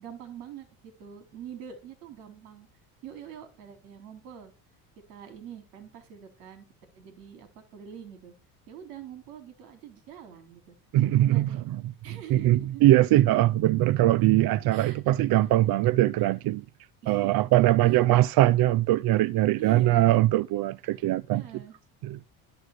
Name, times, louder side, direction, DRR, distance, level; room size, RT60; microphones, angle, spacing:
voice 1, 0.0-2.7 3.0-4.5 5.1-6.7 7.0-8.3 8.7-10.8 11.1-11.6 12.0-12.8 14.7-15.0 17.0-17.5 17.8-17.9 19.6-20.0 20.9-21.0 21.3-21.8, right 9 dB, 80° right, 3.9 m, -44 dB
voice 2, 10.9-11.8 12.3-16.6 17.1-21.4 22.0-22.2, right 15 dB, 50° right, 0.5 m, -22 dB
12.5 x 6.5 x 6.6 m
supercardioid pair, 80°, 46 cm